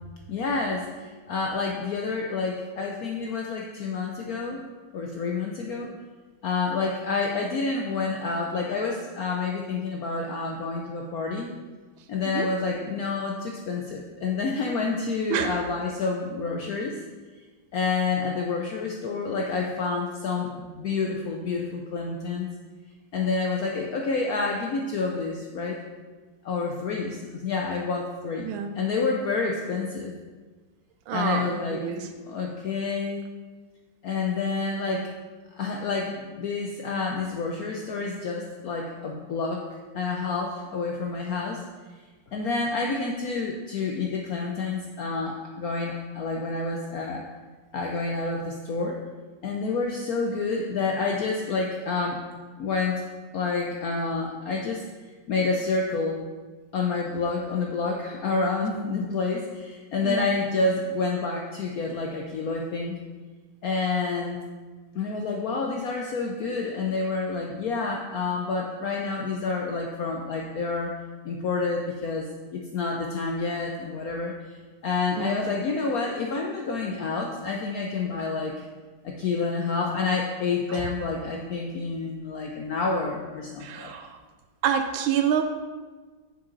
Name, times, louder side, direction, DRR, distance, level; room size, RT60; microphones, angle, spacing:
voice 1, 0.3-4.6 4.9-5.9 6.4-11.5 12.1-17.0 17.7-22.5 23.1-25.8 26.4-28.5 28.7-30.1 31.1-32.0 32.3-33.3 34.0-35.1 35.5-39.7 39.9-41.6 42.3-47.2 47.7-49.0 49.4-52.2 52.6-53.0 53.3-54.8 55.3-56.2 56.7-63.0 63.6-64.4 64.9-70.9 71.2-74.3 74.8-78.5 79.0-83.9, left 4 dB, 65° left, 0 dB, 0.9 m, -28 dB
voice 2, 28.4-28.8 31.1-32.1 60.0-60.3 75.2-75.4 80.7-80.8 83.6-84.1 84.6-85.4, right 8 dB, 90° right, 6 dB, 1.4 m, -27 dB
6.8 x 6.7 x 3.9 m, 1.3 s
omnidirectional pair, 2.1 m